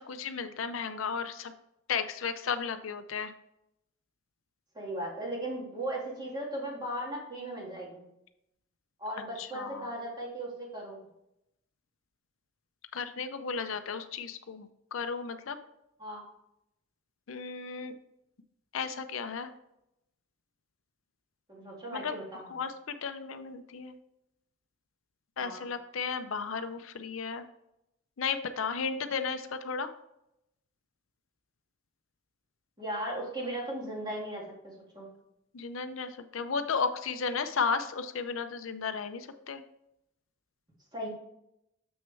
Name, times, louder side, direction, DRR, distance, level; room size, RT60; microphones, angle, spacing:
voice 1, 0.0-1.5 1.9-3.3 9.4-9.9 12.9-15.6 17.3-17.9 18.7-19.5 21.9-22.1 22.5-23.9 25.4-27.4 28.2-29.9 35.5-39.6, left 5 dB, 70° left, 9 dB, 0.6 m, -34 dB
voice 2, 4.7-8.0 9.0-11.0 16.0-16.2 21.5-22.5 25.4-25.6 32.8-35.1 40.9-41.1, right 1 dB, 20° right, -3 dB, 2.2 m, -37 dB
7.2 x 6.2 x 3.4 m, 0.82 s
head